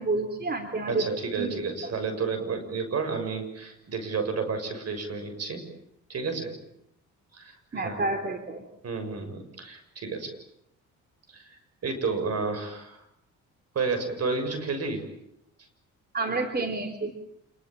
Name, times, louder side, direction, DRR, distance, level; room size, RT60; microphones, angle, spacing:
voice 1, 0.0-1.0 1.4-1.6 7.7-8.6 16.1-17.1, right 3 dB, 30° right, 6 dB, 3.3 m, -29 dB
voice 2, 0.8-5.6 6.1-6.5 7.3-8.0 8.8-10.3 11.3-13.0 13.7-15.0, right 4 dB, 55° right, 8 dB, 6.7 m, -31 dB
27.5 x 22.0 x 9.0 m, 0.78 s
cardioid pair, 90°, 30 cm